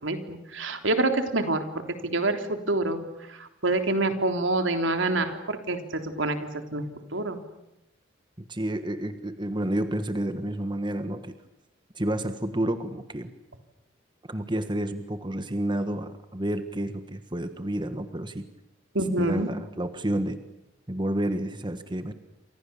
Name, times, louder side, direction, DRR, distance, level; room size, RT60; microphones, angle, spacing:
voice 1, 0.0-1.6 2.0-3.0 3.3-6.9 7.1-7.4 18.9-19.5, right 2 dB, 80° right, 6 dB, 3.5 m, -27 dB
voice 2, 8.4-11.4 11.9-13.3 14.3-18.5 19.2-20.4 20.9-22.1, right 1 dB, 25° right, 9 dB, 1.5 m, -30 dB
29.0 x 26.5 x 7.2 m, 0.91 s
head